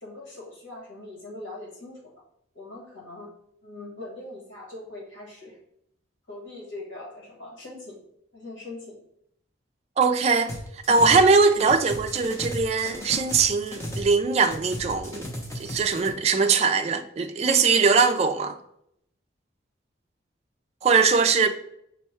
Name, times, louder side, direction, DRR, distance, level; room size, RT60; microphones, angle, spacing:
voice 1, 0.0-2.1 2.5-3.3 3.6-5.6 6.3-8.0 8.3-9.0 21.3-21.5, left 2 dB, 80° left, 1.7 m, -41 dB
voice 2, 10.0-10.6 10.9-15.3 15.6-18.5 20.8-21.5, right 4 dB, 35° right, 0.3 m, -21 dB
sound 1, 10.5-11.3 11.5-14.1 14.4-16.1, equal, 15° left, 0.7 m, -35 dB
5.3 x 2.2 x 4.3 m
head